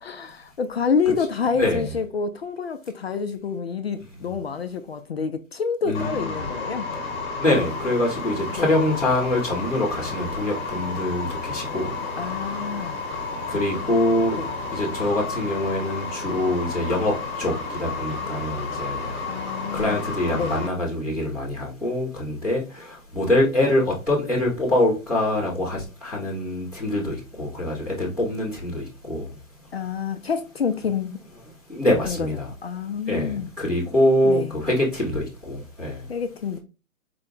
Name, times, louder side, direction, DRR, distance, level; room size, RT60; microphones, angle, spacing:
voice 1, 0.0-6.9 8.5-8.7 12.2-13.0 14.4-14.6 19.3-20.0 20.3-20.6 29.7-31.2 32.0-33.5 34.2-34.5 36.1-36.6, left 6 dB, 50° left, 0.4 m, -28 dB
voice 2, 5.8-6.3 7.4-12.5 12.7-12.9 13.5-14.4 14.7-19.2 19.7-29.3 31.7-32.5 33.1-36.0, left 1 dB, 5° right, 0.5 m, -24 dB
sound 1, 5.9-20.7, left 4 dB, 20° left, 1.1 m, -32 dB
4.8 x 2.1 x 3.8 m
hypercardioid pair, 145°, 42 cm